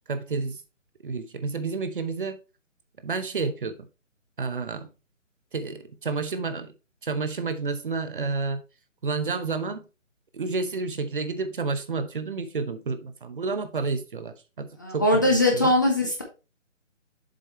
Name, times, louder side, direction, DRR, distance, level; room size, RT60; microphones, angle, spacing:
voice 1, 0.1-0.6 1.0-2.4 3.0-3.8 4.4-4.9 5.5-6.7 7.0-8.6 9.0-9.8 10.3-15.7, right 4 dB, 40° right, 0.8 m, -30 dB
voice 2, 14.8-16.2, left 1 dB, 15° left, 0.6 m, -21 dB
7.5 x 5.1 x 3.3 m
figure-of-eight pair, 155°, 39 cm